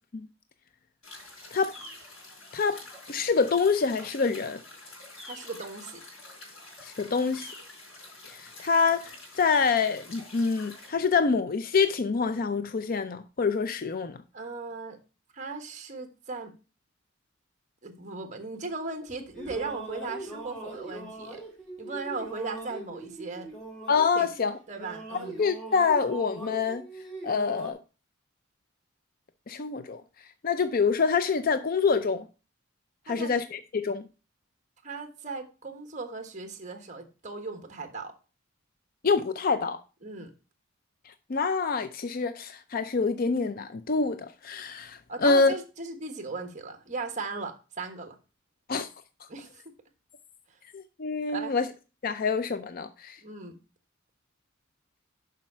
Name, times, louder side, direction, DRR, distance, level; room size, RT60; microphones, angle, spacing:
sound 1, 1.0-10.9, left 2 dB, 85° left, 5.2 m, -46 dB
voice 1, 3.1-4.6 6.8-7.5 8.3-14.2 23.9-24.5 25.4-26.8 27.2-27.8 29.5-30.0 30.4-32.3 33.1-34.0 39.0-39.8 41.1-45.5 48.7-48.9 50.7-51.7 52.0-53.2, left 5 dB, 45° left, 0.5 m, -26 dB
voice 2, 5.3-6.0 14.3-15.0 15.3-16.5 17.8-21.4 21.8-23.5 24.1-24.3 24.7-25.4 33.1-33.3 34.8-38.1 40.0-40.3 45.1-48.2 49.3-49.6 51.3-51.5 53.2-53.6, right 3 dB, 35° right, 1.3 m, -37 dB
sound 2, 19.1-24.4 24.7-27.7, right 2 dB, 5° left, 2.6 m, -41 dB
7.4 x 5.5 x 5.5 m
head